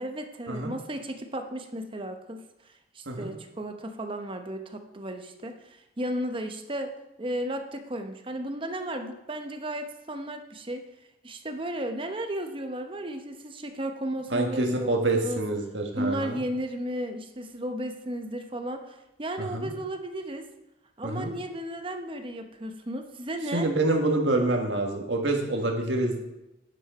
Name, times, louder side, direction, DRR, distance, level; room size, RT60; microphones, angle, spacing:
voice 1, 0.0-6.9 7.2-10.8 11.2-15.4 15.9-20.5 21.0-23.7, right 1 dB, 30° right, 6 dB, 0.8 m, -34 dB
voice 2, 14.3-16.4 19.4-19.7 21.0-21.3 23.5-26.2, right 2 dB, 85° right, 2 dB, 1.6 m, -27 dB
9.6 x 6.6 x 4.9 m, 0.94 s
head